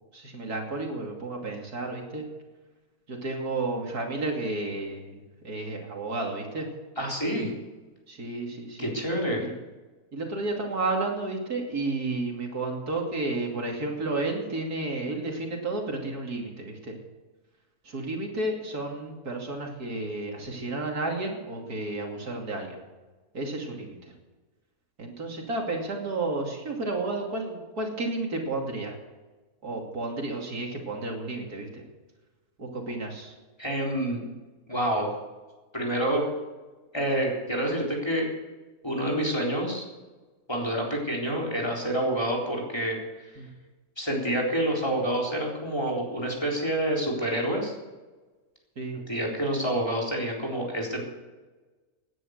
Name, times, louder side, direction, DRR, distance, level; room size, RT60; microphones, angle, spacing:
voice 1, 0.1-2.2 3.1-6.7 8.1-8.9 9.4-9.5 10.1-17.0 17.8-22.8 23.3-24.1 25.0-28.9 29.6-31.8 32.6-33.3 43.4-43.5 48.8-49.0, right 2 dB, 80° right, 1 dB, 3.2 m, -32 dB
voice 2, 7.0-7.5 8.8-9.5 33.6-34.2 34.7-35.1 35.7-36.3 36.9-38.3 38.8-39.9 40.5-43.0 44.0-47.7 49.1-51.1, right 1 dB, 15° left, -2 dB, 3.8 m, -27 dB
17.5 x 10.0 x 6.6 m, 1.2 s
omnidirectional pair, 1.6 m